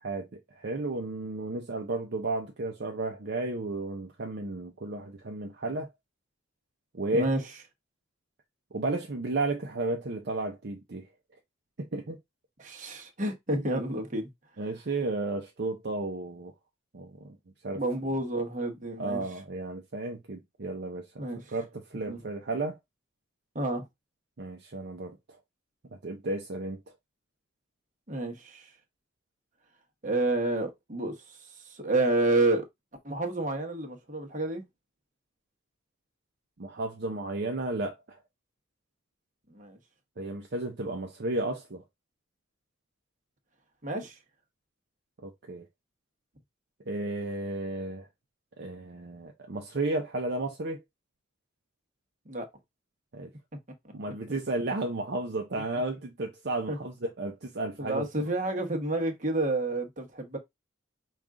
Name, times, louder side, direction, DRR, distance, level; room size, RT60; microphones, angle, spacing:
voice 1, 0.0-5.9 6.9-7.3 8.7-11.1 11.8-12.2 14.6-16.5 16.9-17.4 17.6-17.8 19.0-22.8 24.4-25.2 26.0-26.8 36.6-38.2 40.2-41.8 45.2-45.6 46.9-48.1 48.6-50.8 53.1-53.3 53.9-58.1, right 2 dB, 55° right, 0.6 m, -33 dB
voice 2, 12.6-14.3 17.7-19.2 21.2-21.4 22.1-22.2 23.5-23.8 28.1-28.7 30.0-31.4 31.6-32.6 33.0-34.6 39.5-39.8 43.8-44.2 52.3-52.5 56.7-56.8 57.8-60.4, right 2 dB, 40° right, 1.0 m, -29 dB
5.2 x 2.4 x 3.7 m
head